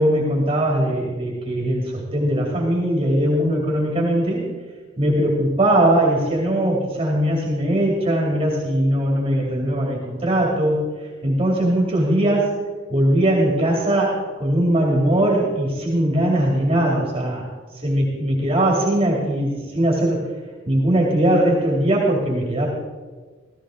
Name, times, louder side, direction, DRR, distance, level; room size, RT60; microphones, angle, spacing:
voice 1, 0.0-4.4 5.0-10.9 11.2-12.5 12.9-17.5 17.8-20.3 20.7-22.7, right 1 dB, 30° right, -3 dB, 2.7 m, -20 dB
16.0 x 15.0 x 3.8 m, 1.4 s
head